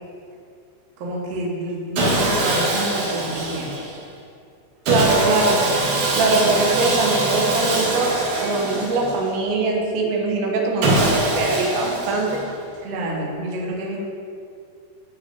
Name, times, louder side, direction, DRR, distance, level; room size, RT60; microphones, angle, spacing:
voice 1, 1.0-3.7 12.8-14.0, right 1 dB, 90° right, -4 dB, 1.4 m, -28 dB
Sawing, 2.0-4.0 4.9-9.4 10.8-12.6, right 2 dB, 55° right, 3.1 m, -23 dB
voice 2, 4.9-5.8 6.2-12.4, right 3 dB, 75° right, 0 dB, 3.0 m, -22 dB
16.5 x 6.3 x 2.8 m, 2.3 s
omnidirectional pair, 5.8 m